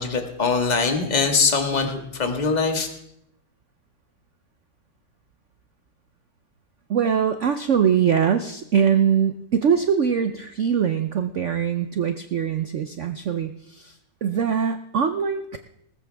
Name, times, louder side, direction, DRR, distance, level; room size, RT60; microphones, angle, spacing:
voice 1, 0.0-2.9, left 4 dB, 20° left, 4 dB, 1.6 m, -22 dB
voice 2, 6.9-15.6, right 7 dB, 80° right, 9 dB, 0.6 m, -22 dB
19.5 x 14.5 x 3.4 m, 0.78 s
omnidirectional pair, 2.2 m